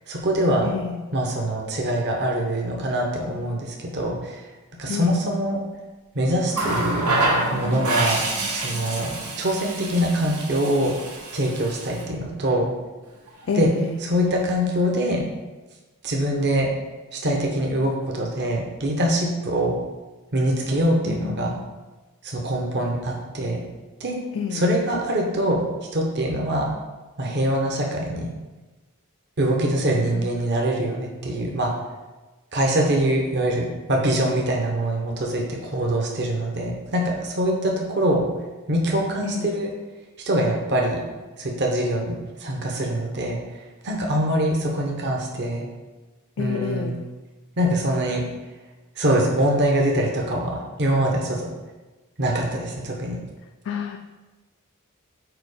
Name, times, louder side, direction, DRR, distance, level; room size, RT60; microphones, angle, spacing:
voice 1, 0.1-0.7 1.1-4.4 4.8-5.6 6.1-7.2 7.5-8.2 8.5-10.9 11.3-12.7 13.5-13.7 14.0-15.3 16.0-16.7 17.1-19.7 20.3-21.6 22.2-23.6 24.0-24.2 24.5-25.6 25.9-26.7 27.2-28.3 29.4-31.7 32.5-38.3 38.7-39.7 40.2-41.0 41.4-43.4 43.8-45.7 46.4-47.0 47.6-48.2 49.0-51.5 52.2-53.2, right 1 dB, 50° right, 0 dB, 0.9 m, -23 dB
voice 2, 0.6-1.0 4.9-5.2 13.5-14.0 21.1-21.7 24.3-24.6 30.0-30.3 39.2-39.5 46.4-47.0 53.7-54.0, left 6 dB, 55° left, 4 dB, 0.4 m, -29 dB
Water tap faucet, 6.5-12.1 13.3-13.5, right 2 dB, 90° right, 1.3 m, -27 dB
4.9 x 4.4 x 4.8 m, 1.2 s
head